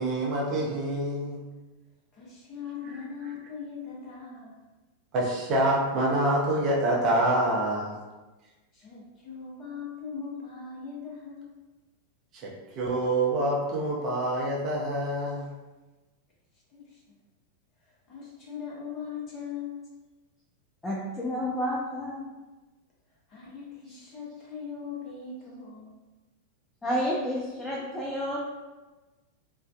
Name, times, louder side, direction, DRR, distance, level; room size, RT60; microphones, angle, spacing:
voice 1, 0.0-1.5 2.8-3.3 5.1-8.0 12.3-15.5, right 1 dB, 35° right, -4 dB, 0.6 m, -27 dB
voice 2, 2.1-4.6 8.7-11.5 16.7-17.1 17.8-20.0 23.3-26.0, left 6 dB, 30° left, -5 dB, 0.8 m, -40 dB
voice 3, 20.8-22.3 26.8-28.4, equal, 10° left, -5 dB, 0.4 m, -30 dB
2.4 x 2.2 x 2.3 m, 1.2 s
figure-of-eight pair, 90°, 0 cm